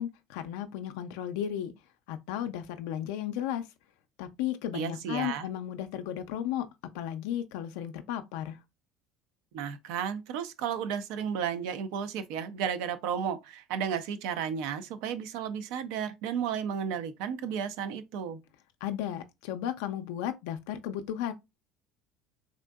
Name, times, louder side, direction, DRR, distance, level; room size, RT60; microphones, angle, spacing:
voice 1, 0.0-1.7 2.1-3.6 4.2-6.7 6.9-8.6 18.8-21.3, left 11 dB, 85° left, 0.3 m, -34 dB
voice 2, 4.7-5.5 9.5-18.4, right 7 dB, 75° right, 0.4 m, -33 dB
3.6 x 2.6 x 2.3 m
supercardioid pair, 90°, 0 cm